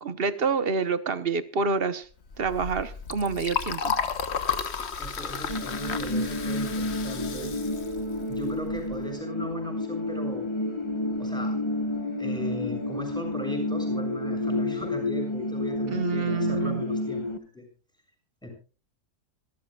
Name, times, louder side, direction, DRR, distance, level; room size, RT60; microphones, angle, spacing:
voice 1, 0.0-2.1 2.4-4.0 15.9-16.8, right 5 dB, 45° right, 1.1 m, -27 dB
Liquid, 2.3-9.0, left 6 dB, 50° left, 1.3 m, -33 dB
voice 2, 5.0-7.5 8.3-10.5 11.2-11.6 12.2-17.2 17.5-17.6 18.4-18.5, equal, 5° left, 6.9 m, -38 dB
sound 1, 5.5-17.4, left 2 dB, 20° left, 1.2 m, -30 dB
26.0 x 13.5 x 2.4 m
omnidirectional pair, 1.6 m